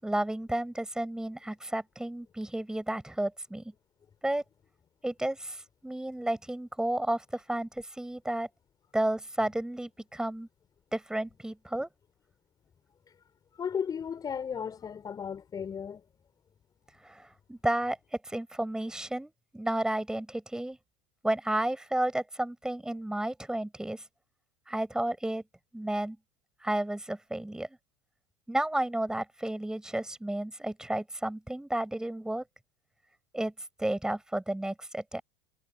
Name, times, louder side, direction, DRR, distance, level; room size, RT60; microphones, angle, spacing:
voice 1, 0.0-3.7 4.2-4.4 5.0-8.5 8.9-10.5 10.9-11.9 17.0-18.0 18.3-20.8 21.2-24.0 24.7-25.4 25.7-26.2 26.6-27.7 28.5-32.4 33.3-33.5 33.8-35.2, right 1 dB, 5° right, 6.2 m, -32 dB
voice 2, 13.6-16.0, left 7 dB, 25° left, 5.3 m, -35 dB
figure-of-eight pair, 75°, 15 cm